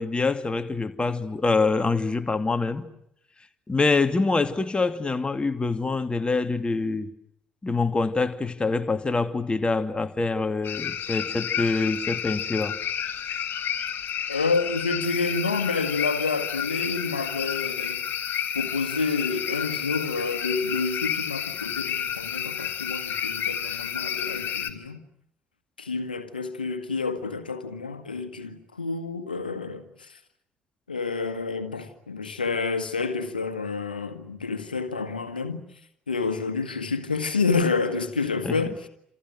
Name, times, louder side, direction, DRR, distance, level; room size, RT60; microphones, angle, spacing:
voice 1, 0.0-2.9 3.7-7.1 7.6-12.8 38.4-38.7, left 3 dB, 20° left, 2.8 m, -25 dB
sound 1, 10.6-24.7, left 9 dB, 45° left, 3.3 m, -30 dB
voice 2, 14.3-18.0 18.5-25.0 25.8-30.2 30.9-35.6 36.1-38.9, left 4 dB, 85° left, 1.8 m, -29 dB
30.0 x 28.0 x 6.3 m
figure-of-eight pair, 50°, 5 cm